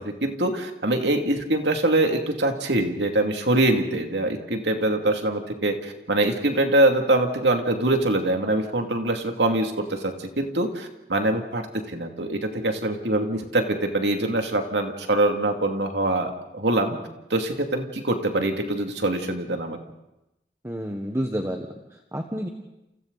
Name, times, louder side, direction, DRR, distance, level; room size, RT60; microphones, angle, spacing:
voice 1, 0.0-17.0 17.3-19.8, right 1 dB, 80° right, 4 dB, 2.6 m, -24 dB
voice 2, 20.6-22.5, equal, 15° right, 3 dB, 1.3 m, -30 dB
29.0 x 29.0 x 4.1 m, 0.91 s
head